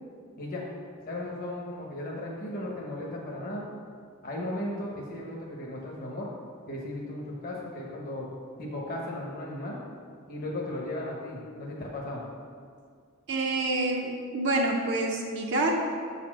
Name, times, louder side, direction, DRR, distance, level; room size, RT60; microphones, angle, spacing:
voice 1, 0.4-0.7 1.1-3.7 4.2-6.3 6.7-8.3 8.6-9.8 10.3-12.2, left 1 dB, 45° left, -3 dB, 1.0 m, -36 dB
voice 2, 13.3-15.8, right 2 dB, 55° right, -1 dB, 0.7 m, -27 dB
6.9 x 4.2 x 6.0 m, 2.1 s
head